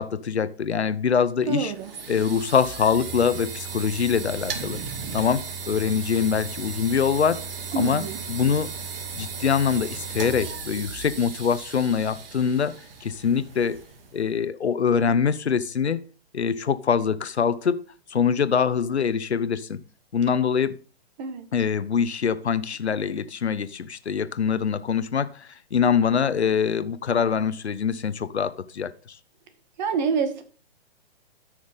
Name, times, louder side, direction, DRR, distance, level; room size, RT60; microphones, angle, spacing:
voice 1, 0.0-1.7 2.1-4.8 5.1-7.4 7.8-8.0 8.3-8.7 9.1-12.7 13.0-13.8 14.1-16.0 16.3-17.8 18.1-19.8 20.1-20.7 21.5-29.2, left 6 dB, 85° left, 14 dB, 1.0 m, -24 dB
voice 2, 1.5-1.9 7.7-8.2 21.2-21.5 29.8-30.4, right 5 dB, 45° right, 9 dB, 1.9 m, -27 dB
sound 1, 1.5-14.3, right 5 dB, 60° right, 2.1 m, -36 dB
13.5 x 6.3 x 3.6 m, 0.38 s
hypercardioid pair, 130°, 32 cm